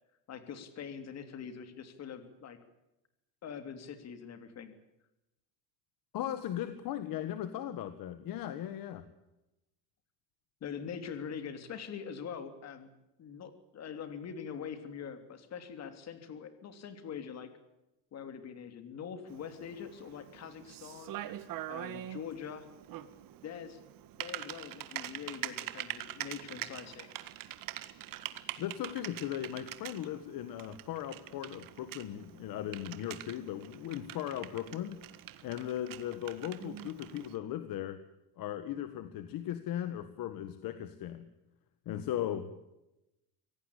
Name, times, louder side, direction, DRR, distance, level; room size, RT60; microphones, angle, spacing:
voice 1, 0.3-2.6 3.4-4.8 10.6-12.9 13.2-17.5 18.1-21.2 21.7-22.7 23.4-23.8 24.1-27.1, left 7 dB, 40° left, 9 dB, 3.1 m, -43 dB
voice 2, 6.1-9.1 28.6-35.0 35.4-38.0 38.4-41.3 41.9-42.6, left 11 dB, 55° left, 10 dB, 1.7 m, -38 dB
Typing, 19.3-37.4, right 13 dB, 55° right, 1.8 m, -44 dB
25.0 x 17.5 x 8.4 m, 0.93 s
cardioid pair, 155°, 40 cm